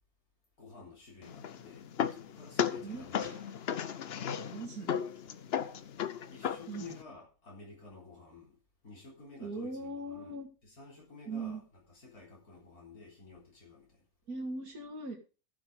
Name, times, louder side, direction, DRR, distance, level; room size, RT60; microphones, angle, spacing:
voice 1, 0.6-3.3 6.3-8.6 8.8-13.9, left 4 dB, 90° left, 4.3 m, -52 dB
sound 1, 1.2-7.0, left 8 dB, 55° left, 0.8 m, -36 dB
Gunshot gunfire, 1.4-1.6 3.2-4.2 5.0-5.3, right 2 dB, 15° right, 3.0 m, -57 dB
voice 2, 4.5-5.0 6.7-7.0 9.4-10.5 11.3-11.6 14.3-15.2, right 2 dB, 80° right, 2.4 m, -39 dB
15.0 x 6.2 x 5.1 m
omnidirectional pair, 1.5 m